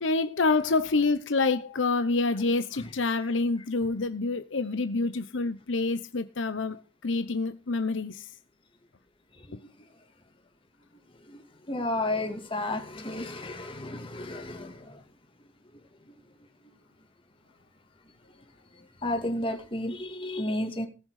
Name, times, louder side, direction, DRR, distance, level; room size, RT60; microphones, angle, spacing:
voice 1, 0.0-8.3, left 3 dB, 85° left, 0.9 m, -27 dB
voice 2, 11.7-15.0 19.0-20.9, left 1 dB, 30° left, 2.6 m, -32 dB
18.5 x 6.4 x 4.9 m
head